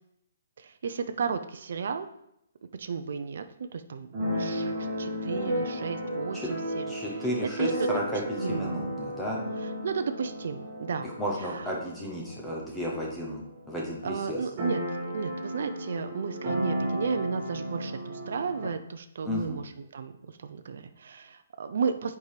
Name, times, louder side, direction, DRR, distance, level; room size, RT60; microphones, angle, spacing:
voice 1, 0.6-2.1 2.8-3.4 3.7-6.8 7.6-7.9 8.4-8.7 9.8-11.1 11.4-11.7 14.0-22.2, right 5 dB, 50° right, 8 dB, 0.5 m, -33 dB
Keyboard (musical), 4.1-13.7 13.9-14.0 14.3-18.7, equal, 20° right, 1.4 m, -33 dB
voice 2, 6.9-8.2 8.5-9.4 11.0-13.4 13.7-14.4 19.2-19.6, equal, 5° left, -3 dB, 0.6 m, -33 dB
8.1 x 4.7 x 3.3 m, 0.79 s
hypercardioid pair, 180°, 0 cm